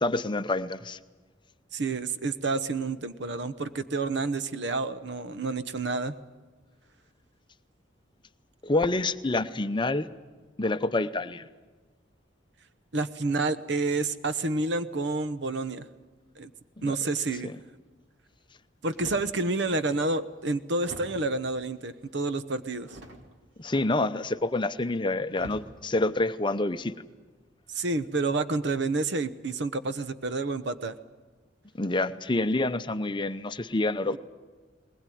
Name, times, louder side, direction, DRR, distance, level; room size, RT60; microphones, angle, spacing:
voice 1, 0.0-1.0 8.6-10.1 10.6-11.4 16.8-17.0 17.4-17.5 23.6-26.9 31.8-34.2, left 2 dB, 25° left, 10 dB, 0.7 m, -27 dB
voice 2, 1.7-6.1 12.9-15.8 16.4-16.5 16.8-17.5 18.8-22.9 27.7-31.0 34.1-34.2, right 3 dB, 65° right, 11 dB, 1.0 m, -29 dB
sound 1, 18.9-19.4 20.1-20.2 20.8-21.4 22.8-23.5 24.7-24.8 25.3-25.8 26.4-26.7, right 1 dB, 85° right, 2.5 m, -44 dB
20.5 x 20.0 x 9.3 m, 1.4 s
head